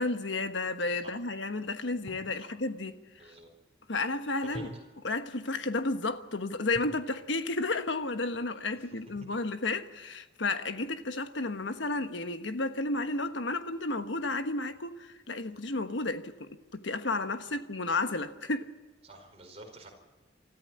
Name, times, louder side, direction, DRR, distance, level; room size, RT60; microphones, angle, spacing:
voice 1, 0.0-2.9 3.2-3.3 3.9-4.7 5.0-18.7, left 2 dB, 85° left, 1.3 m, -32 dB
sound 1, 2.1-2.4 4.5-5.2 6.7-7.1 9.1-9.7, equal, 30° left, 3.9 m, -46 dB
voice 2, 3.2-3.5 4.5-4.7 8.7-8.8 19.0-19.9, right 2 dB, 35° right, 4.7 m, -49 dB
25.5 x 14.0 x 9.7 m
head